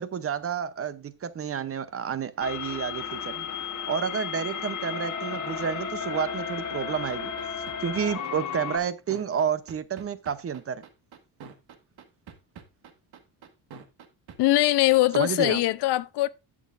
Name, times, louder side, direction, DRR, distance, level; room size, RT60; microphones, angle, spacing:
voice 1, 0.0-3.5 3.9-7.3 7.8-10.8 15.1-15.6, right 7 dB, 35° right, 0.7 m, -30 dB
sound 1, 2.4-8.8, left 7 dB, 45° left, 1.2 m, -34 dB
sound 2, 6.9-14.4, right 6 dB, 65° right, 1.6 m, -45 dB
voice 2, 14.4-16.3, left 16 dB, 70° left, 0.6 m, -22 dB
16.0 x 6.2 x 2.5 m
cardioid pair, 140°, 42 cm